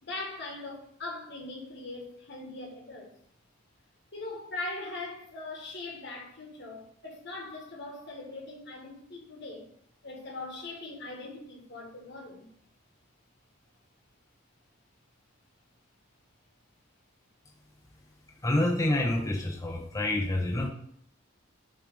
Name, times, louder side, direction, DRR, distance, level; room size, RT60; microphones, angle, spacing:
voice 1, 0.0-3.1 4.1-9.7 10.0-12.5, left 2 dB, 60° left, 1.7 m, -40 dB
voice 2, 18.4-20.7, left 1 dB, 15° left, 0.6 m, -27 dB
6.7 x 3.2 x 5.0 m
head